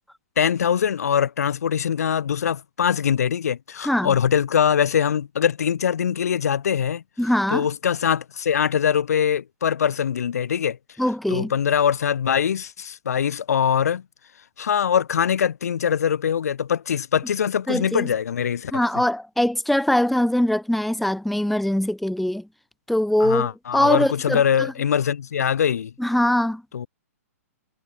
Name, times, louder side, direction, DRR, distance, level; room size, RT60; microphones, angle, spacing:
voice 1, 0.4-7.0 7.5-10.8 11.3-14.0 14.6-18.7 23.2-25.9 26.7-26.9, left 8 dB, 75° left, 1.6 m, -22 dB
voice 2, 3.8-4.1 7.2-7.7 11.0-11.5 17.7-18.1 18.7-22.5 22.9-24.7 26.0-26.6, left 1 dB, ahead, 1.0 m, -22 dB
hypercardioid pair, 140°, 8 cm